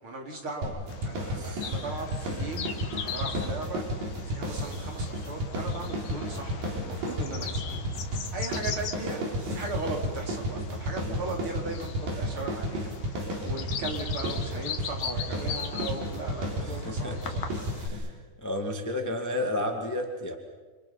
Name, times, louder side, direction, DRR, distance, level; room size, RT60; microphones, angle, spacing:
voice 1, 0.0-7.7 8.1-17.6, right 2 dB, 35° right, 1 dB, 4.1 m, -38 dB
sound 1, 0.6-18.1, equal, 60° right, 5.5 m, -33 dB
Bird vocalization bird call bird song, 0.9-17.9, left 7 dB, 65° left, 3.1 m, -41 dB
voice 2, 1.3-1.7 11.0-11.1 16.6-17.3 17.8-18.1 18.4-20.3, left 1 dB, 15° left, 4 dB, 0.6 m, -32 dB
30.0 x 27.0 x 5.7 m, 1.3 s
omnidirectional pair, 4.5 m